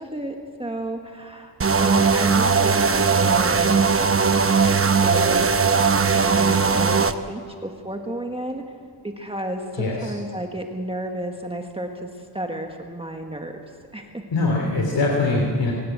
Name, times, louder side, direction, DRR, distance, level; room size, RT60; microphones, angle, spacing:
voice 1, 0.0-3.8 5.0-5.5 6.2-8.6 9.0-12.1 12.3-13.6 13.9-14.2, right 1 dB, 15° right, 3 dB, 1.5 m, -32 dB
sound 1, 1.6-7.1, right 5 dB, 30° right, 0.9 m, -19 dB
voice 2, 9.7-10.1 14.3-15.7, left 2 dB, 85° left, -1 dB, 3.2 m, -22 dB
23.5 x 18.5 x 8.2 m, 2.1 s
wide cardioid pair, 120°, 42 cm